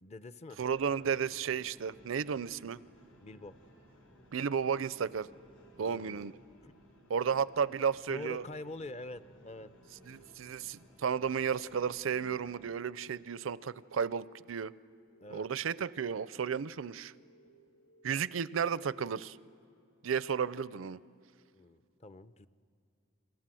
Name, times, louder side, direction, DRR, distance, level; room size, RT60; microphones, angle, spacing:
voice 1, 0.0-0.6 3.2-3.6 5.7-6.3 6.6-6.7 8.1-9.7 15.2-15.5 21.5-22.5, left 2 dB, 35° left, 14 dB, 0.7 m, -45 dB
sound 1, 0.6-12.7, equal, 85° left, 5.7 m, -60 dB
voice 2, 0.6-2.8 4.3-5.3 5.8-6.3 7.1-8.4 10.1-14.7 15.3-17.1 18.0-19.4 20.0-21.0, right 7 dB, 75° right, 18 dB, 0.5 m, -33 dB
sound 2, 5.2-6.2 7.1-8.2 9.1-10.1 11.1-12.1 13.1-14.1 15.1-16.1 17.1-18.1, right 1 dB, 65° left, 6.9 m, -65 dB
30.0 x 22.5 x 7.7 m, 2.4 s
head